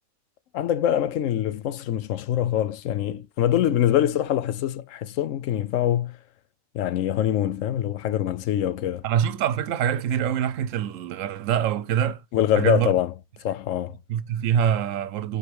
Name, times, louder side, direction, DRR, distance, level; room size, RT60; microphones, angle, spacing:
voice 1, 0.5-6.2 6.7-9.0 12.3-13.1 13.4-13.9, left 11 dB, 75° left, 1.0 m, -24 dB
voice 2, 9.0-12.2 12.6-12.9 14.1-15.4, right 9 dB, 75° right, 1.0 m, -24 dB
5.0 x 4.7 x 4.7 m
omnidirectional pair, 1.4 m